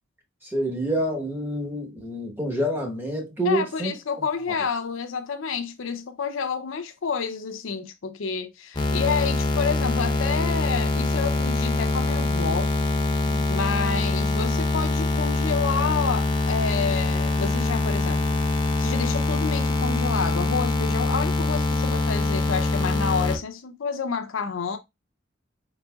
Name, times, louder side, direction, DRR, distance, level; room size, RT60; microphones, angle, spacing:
voice 1, 0.4-3.9, right 1 dB, 10° right, 1.0 m, -27 dB
voice 2, 3.4-12.7 13.5-18.4 18.8-24.8, left 5 dB, 80° left, 0.6 m, -29 dB
sound 1, 8.8-23.4, left 2 dB, 25° left, 0.6 m, -24 dB
4.7 x 4.0 x 2.3 m
head